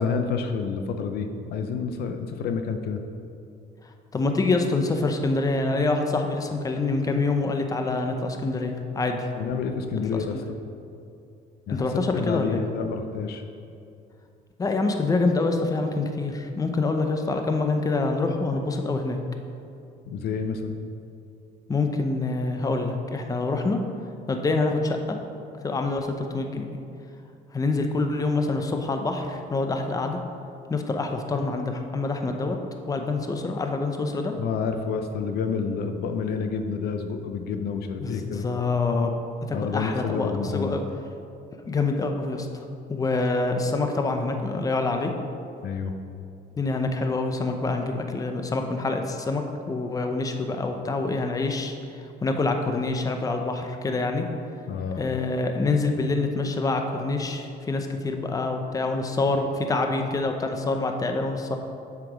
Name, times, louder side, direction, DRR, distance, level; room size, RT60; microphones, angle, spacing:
voice 1, 0.0-3.0 9.3-10.4 11.7-13.4 20.1-20.8 34.3-38.4 39.5-40.8 45.6-45.9 54.7-55.0, left 5 dB, 70° left, 7 dB, 0.6 m, -29 dB
voice 2, 4.1-9.2 10.3-10.5 11.7-12.6 14.6-19.2 21.7-23.8 24.3-25.2 25.6-26.6 27.5-30.2 30.7-32.6 32.9-34.3 38.0-39.1 39.5-40.8 41.7-45.1 46.6-51.7 52.2-54.2 55.0-61.6, left 3 dB, 20° left, 5 dB, 0.7 m, -26 dB
7.6 x 5.9 x 5.0 m, 2.5 s
cardioid pair, 110°, 17 cm